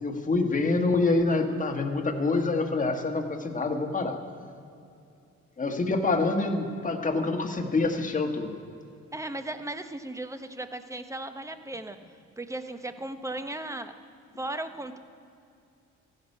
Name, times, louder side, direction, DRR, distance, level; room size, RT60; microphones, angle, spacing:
voice 1, 0.0-4.2 5.6-8.6, left 3 dB, 25° left, 4 dB, 1.4 m, -26 dB
voice 2, 9.1-12.0 12.4-13.9 14.4-15.0, right 2 dB, 10° right, 8 dB, 0.9 m, -36 dB
14.5 x 11.0 x 5.5 m, 2.5 s
cardioid pair, 90°, 30 cm